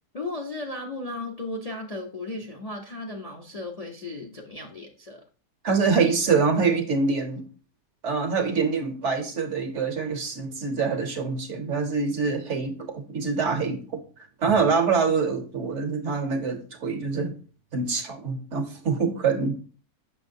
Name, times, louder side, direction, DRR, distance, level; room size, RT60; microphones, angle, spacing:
voice 1, 0.1-5.2, left 2 dB, 40° left, 0.5 m, -35 dB
voice 2, 5.6-7.5 8.0-14.0 14.4-17.4 17.7-19.6, right 5 dB, 60° right, 0.9 m, -25 dB
6.4 x 5.9 x 2.6 m
omnidirectional pair, 1.6 m